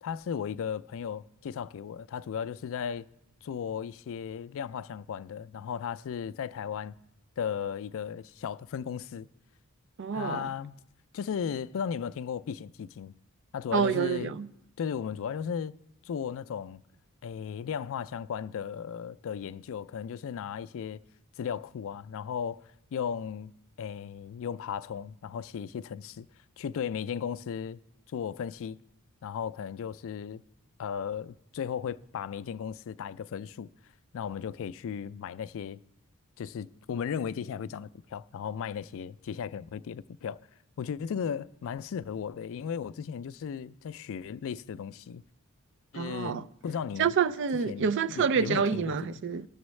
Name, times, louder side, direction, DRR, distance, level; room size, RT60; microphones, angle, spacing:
voice 1, 0.0-3.1 3.4-6.9 7.4-9.3 10.1-10.8 11.1-13.1 13.5-14.3 14.8-15.8 16.0-16.8 17.2-21.0 21.4-22.6 22.9-23.5 23.8-26.3 26.6-27.8 28.1-28.8 29.2-30.4 30.8-33.7 34.1-35.8 36.4-40.4 40.8-45.2 45.9-47.1 47.7-49.0, left 7 dB, 65° left, 0.3 m, -36 dB
voice 2, 10.0-10.5 13.7-14.5 46.0-46.4 47.0-49.5, right 6 dB, 55° right, 0.4 m, -27 dB
19.0 x 7.0 x 3.2 m
head